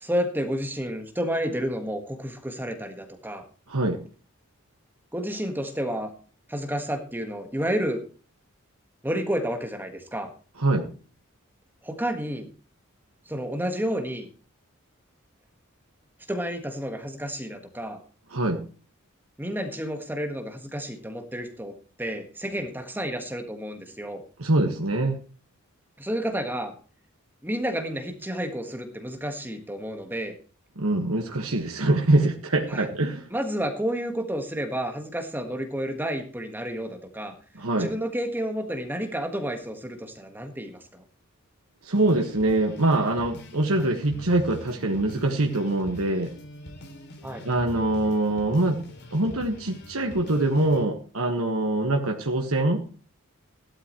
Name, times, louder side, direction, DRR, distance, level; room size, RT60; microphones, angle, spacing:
voice 1, 0.0-3.4 5.1-6.1 6.5-8.0 9.0-10.3 11.8-12.5 13.3-14.3 16.3-18.0 19.4-24.2 26.0-26.7 27.4-30.4 32.7-32.9 33.3-37.3 37.8-41.0 47.2-47.4, equal, 10° right, 5 dB, 1.6 m, -30 dB
voice 2, 3.7-4.0 10.6-10.9 18.3-18.6 24.4-25.2 30.8-33.3 37.6-37.9 41.8-46.3 47.5-48.8 49.1-52.8, right 2 dB, 85° right, 2 dB, 1.6 m, -24 dB
sound 1, 41.9-50.9, equal, 50° left, 2.8 m, -43 dB
15.5 x 12.5 x 3.1 m, 0.37 s
head